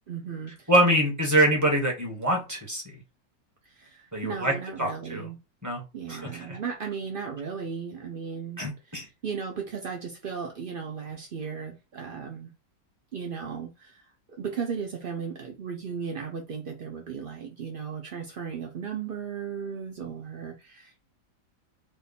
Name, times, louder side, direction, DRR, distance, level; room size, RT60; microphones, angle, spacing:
voice 1, 0.1-0.7 3.6-5.4 5.9-12.5 13.1-14.1 14.3-21.0, right 6 dB, 70° right, 0.5 m, -36 dB
voice 2, 0.7-3.0 4.1-5.3 5.6-5.8 6.1-6.6 8.6-9.0, right 1 dB, 10° right, 1.3 m, -25 dB
3.6 x 2.6 x 4.1 m
omnidirectional pair, 1.9 m